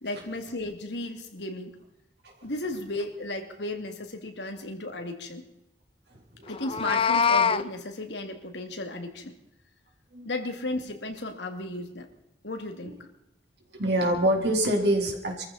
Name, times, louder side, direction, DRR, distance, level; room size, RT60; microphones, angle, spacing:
voice 1, 0.0-1.8 2.4-5.4 6.5-9.3 10.2-12.1 12.4-13.0, left 2 dB, 75° left, 5 dB, 2.4 m, -34 dB
voice 2, 6.4-6.7 10.1-10.3 12.8-12.9 13.7-15.4, right 1 dB, 65° right, 2 dB, 3.8 m, -25 dB
Meow, 6.5-7.6, left 6 dB, 30° left, 0.5 m, -23 dB
24.0 x 14.5 x 4.2 m, 0.84 s
head